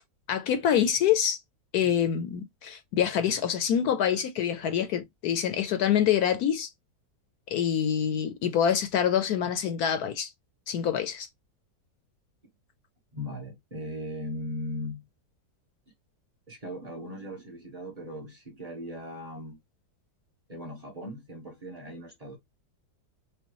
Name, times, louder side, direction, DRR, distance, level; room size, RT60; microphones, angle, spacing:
voice 1, 0.3-1.4 1.7-6.7 7.5-10.3 10.7-11.3, left 9 dB, 70° left, 1.0 m, -26 dB
voice 2, 13.1-15.1 16.5-19.6 20.5-22.4, left 1 dB, 25° right, 1.1 m, -38 dB
5.2 x 2.2 x 3.0 m
omnidirectional pair, 1.8 m